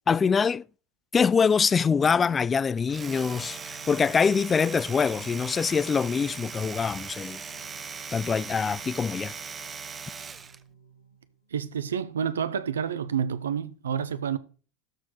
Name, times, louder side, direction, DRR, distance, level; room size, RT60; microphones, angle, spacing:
voice 1, 0.1-0.6 1.1-7.4 8.1-9.3, left 6 dB, 25° left, 0.3 m, -24 dB
Singing, 2.7-11.6, right 3 dB, 85° left, 3.5 m, -55 dB
Domestic sounds home sounds, 2.8-10.6, right 5 dB, 25° right, 0.6 m, -39 dB
voice 2, 11.5-14.4, right 8 dB, 85° right, 0.7 m, -29 dB
13.0 x 4.9 x 3.8 m
hypercardioid pair, 90°, 0 cm